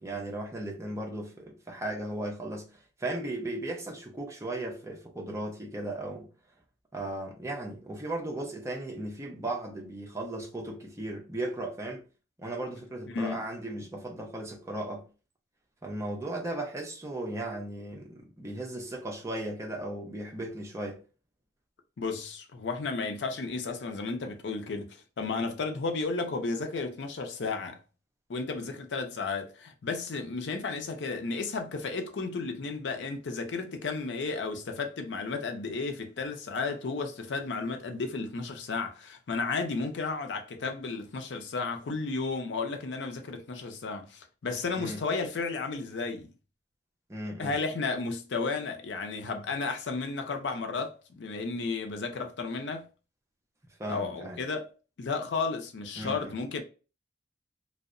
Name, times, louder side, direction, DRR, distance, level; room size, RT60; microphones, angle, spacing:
voice 1, 0.0-2.7 3.0-6.3 6.9-12.0 12.4-15.1 15.8-21.0 44.8-45.0 47.1-47.6 53.8-54.4 56.0-56.3, right 1 dB, 15° right, 0.6 m, -36 dB
voice 2, 13.1-13.4 22.0-27.8 28.3-46.3 47.4-52.9 53.9-54.7 55.0-56.6, left 4 dB, 80° left, 0.5 m, -33 dB
2.7 x 2.0 x 2.5 m
head